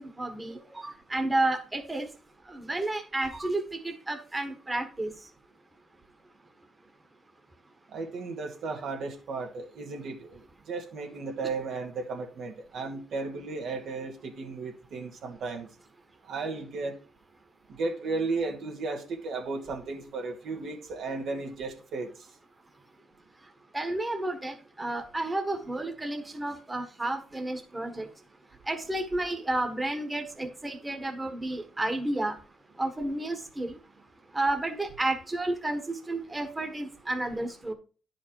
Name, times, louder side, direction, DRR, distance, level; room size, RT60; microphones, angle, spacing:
voice 1, 0.0-2.1 2.5-5.1 23.7-28.1 28.7-32.4 32.8-33.8 34.3-37.7, right 2 dB, 15° right, 5 dB, 1.5 m, -31 dB
voice 2, 7.9-15.7 16.2-17.0 17.8-22.1, right 3 dB, 70° right, 3 dB, 2.0 m, -34 dB
10.0 x 5.0 x 4.7 m, 0.36 s
cardioid pair, 90°, 0 cm